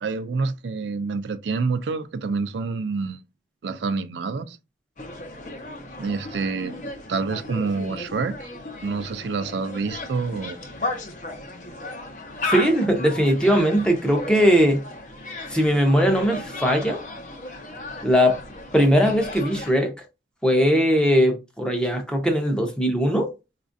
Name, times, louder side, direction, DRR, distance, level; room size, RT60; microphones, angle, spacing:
voice 1, 0.0-3.2 3.6-4.6 6.0-6.8 7.1-8.5 8.8-10.6, right 4 dB, 80° right, 0.4 m, -27 dB
sound 1, 5.0-19.7, left 2 dB, 45° left, 0.7 m, -35 dB
voice 2, 12.5-14.8 15.5-17.0 18.0-18.4 18.7-19.9 20.4-23.3, equal, 5° left, 0.6 m, -20 dB
4.2 x 2.4 x 2.5 m
head